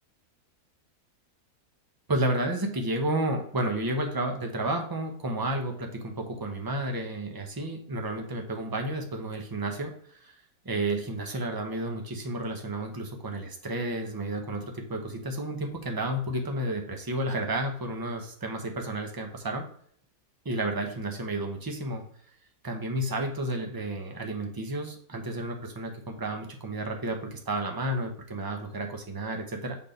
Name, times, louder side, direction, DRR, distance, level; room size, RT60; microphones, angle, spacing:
voice 1, 2.1-10.3 10.6-19.6 20.4-22.0 22.6-29.8, right 1 dB, 20° right, 3 dB, 0.8 m, -31 dB
6.6 x 3.7 x 5.2 m, 0.62 s
omnidirectional pair, 1.7 m